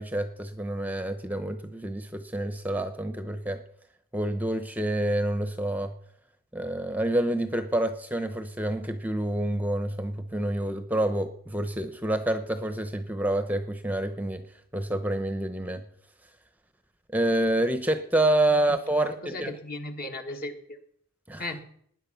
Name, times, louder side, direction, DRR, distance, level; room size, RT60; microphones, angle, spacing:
voice 1, 0.0-3.6 4.1-5.9 6.5-14.4 14.7-15.8 17.1-19.6 21.3-21.4, right 1 dB, 10° right, 9 dB, 0.8 m, -28 dB
voice 2, 19.2-20.8 21.4-21.6, left 1 dB, 45° left, 5 dB, 1.7 m, -36 dB
19.0 x 10.0 x 5.7 m, 0.67 s
head